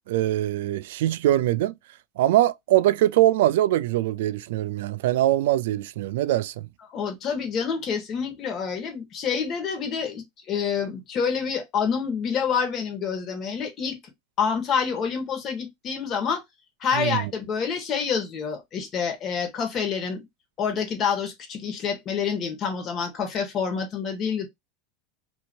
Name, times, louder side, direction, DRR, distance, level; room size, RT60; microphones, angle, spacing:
voice 1, 0.1-1.7 2.2-6.7 16.9-17.3, right 14 dB, 80° right, 0.3 m, -22 dB
voice 2, 6.9-14.0 14.4-16.4 16.8-20.2 20.6-24.5, left 6 dB, 35° left, 1.3 m, -27 dB
2.7 x 2.7 x 2.7 m
supercardioid pair, 130°, 0 cm